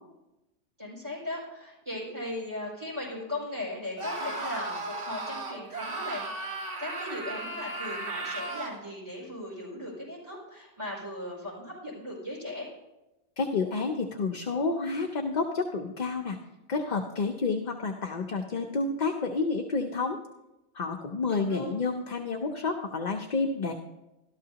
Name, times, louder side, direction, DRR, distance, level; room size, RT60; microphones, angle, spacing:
voice 1, 0.8-12.7 21.3-21.8, left 1 dB, 25° right, -6 dB, 5.0 m, -38 dB
Screaming, 4.0-8.8, right 2 dB, 75° right, 1.6 m, -35 dB
voice 2, 13.4-16.4 16.7-20.2 20.7-23.7, left 4 dB, 45° left, 2 dB, 0.7 m, -30 dB
13.0 x 12.0 x 2.8 m, 0.99 s
omnidirectional pair, 1.2 m